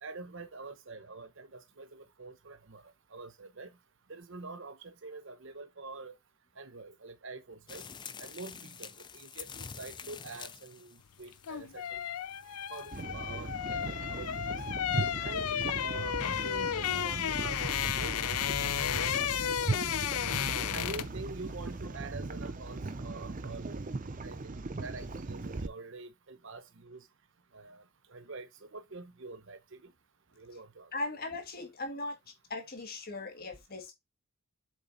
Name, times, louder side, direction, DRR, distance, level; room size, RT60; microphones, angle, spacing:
voice 1, 0.0-3.7 4.1-6.1 6.6-7.8 8.2-12.0 12.7-14.6 15.2-20.0 20.5-23.8 24.2-27.1 27.5-27.8 28.1-29.9 30.4-30.9, right 3 dB, 55° right, 0.9 m, -46 dB
sound 1, 7.7-13.0, left 7 dB, 20° left, 0.3 m, -47 dB
sound 2, 11.2-21.2 21.5-21.7, left 10 dB, 80° left, 0.5 m, -33 dB
sound 3, 12.9-25.7, right 3 dB, 35° right, 0.6 m, -38 dB
voice 2, 30.9-32.2 32.5-33.9, left 2 dB, 40° left, 1.7 m, -38 dB
7.3 x 3.9 x 3.9 m
head